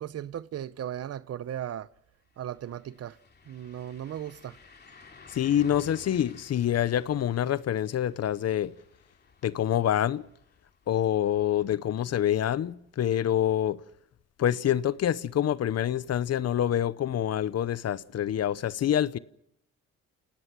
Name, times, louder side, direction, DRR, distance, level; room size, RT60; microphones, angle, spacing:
voice 1, 0.0-1.9 2.4-3.2 3.5-4.6, right 10 dB, 55° right, 0.8 m, -36 dB
sound 1, 1.9-2.0 2.3-12.1 12.5-12.6 15.4-15.5, left 4 dB, 35° left, 2.7 m, -54 dB
voice 2, 5.3-8.7 9.4-10.2 10.9-13.8 14.4-19.2, left 10 dB, 55° left, 0.8 m, -26 dB
29.0 x 17.5 x 6.1 m
cardioid pair, 90°, 30 cm